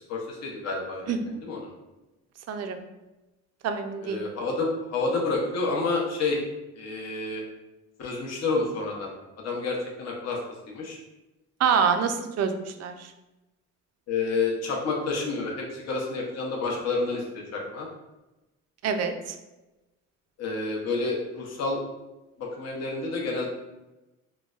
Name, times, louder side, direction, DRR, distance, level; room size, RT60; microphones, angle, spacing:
voice 1, 0.1-1.7 4.0-6.4 6.7-7.4 8.0-10.4 10.7-11.0 14.1-17.9 20.4-21.8 22.4-23.5, left 3 dB, 60° left, -2 dB, 0.8 m, -29 dB
voice 2, 2.5-2.8 3.6-4.3 11.6-13.1 18.8-19.4, right 6 dB, 55° right, 7 dB, 0.4 m, -26 dB
3.8 x 2.1 x 2.3 m, 1.0 s
cardioid pair, 90°, 30 cm